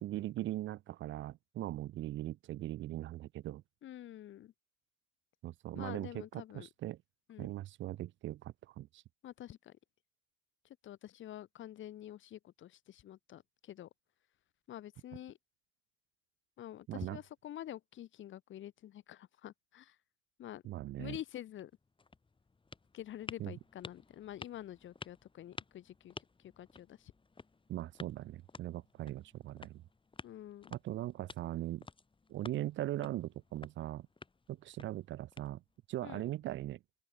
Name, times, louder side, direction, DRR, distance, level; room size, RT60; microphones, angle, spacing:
voice 1, 0.0-3.6 5.4-7.0 7.4-9.0 16.9-17.2 20.6-21.2 23.4-23.5 27.7-29.8 30.7-31.9 32.3-34.1 34.5-35.6 35.9-36.8, right 14 dB, 70° right, 0.6 m, -40 dB
voice 2, 3.8-4.5 5.7-6.7 7.3-7.5 9.2-9.8 10.8-13.9 14.7-15.4 16.6-20.0 20.4-20.6 21.0-21.7 22.9-26.1 26.6-27.1 30.2-30.7 36.0-36.2, left 12 dB, 75° left, 3.7 m, -47 dB
sound 1, 21.4-36.0, left 4 dB, 25° left, 3.4 m, -53 dB
open air
cardioid pair, 90°, 20 cm